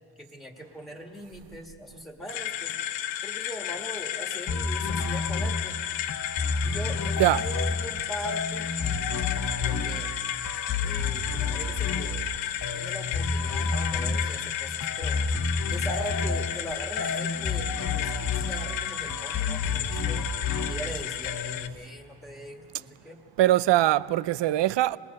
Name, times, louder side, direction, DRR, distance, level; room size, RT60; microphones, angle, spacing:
voice 1, 0.2-2.7 3.2-5.8 6.6-8.7 9.6-10.1 10.8-12.3 12.7-15.2 15.7-20.3 20.6-23.2, equal, ahead, 1.7 m, -40 dB
sound 1, 2.3-21.7, left 11 dB, 85° left, 0.8 m, -33 dB
sound 2, 4.5-21.7, left 4 dB, 45° left, 1.1 m, -30 dB
voice 2, 23.4-25.0, right 15 dB, 70° right, 0.6 m, -22 dB
24.5 x 21.0 x 5.3 m
cardioid pair, 105°, 44 cm